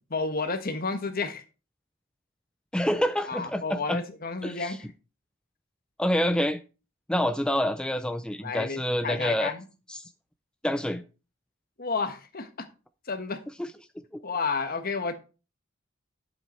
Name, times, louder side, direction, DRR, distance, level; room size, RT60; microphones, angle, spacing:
voice 1, 0.1-1.4 3.3-4.9 7.2-7.3 8.4-9.6 11.8-12.7 13.1-13.4 14.2-15.1, left 4 dB, 50° left, 1.4 m, -31 dB
voice 2, 2.7-4.0 4.4-4.8 6.0-6.6 7.1-9.5 9.9-10.1 10.6-11.0 13.6-13.7, equal, 5° left, 0.5 m, -27 dB
11.0 x 7.7 x 4.4 m
head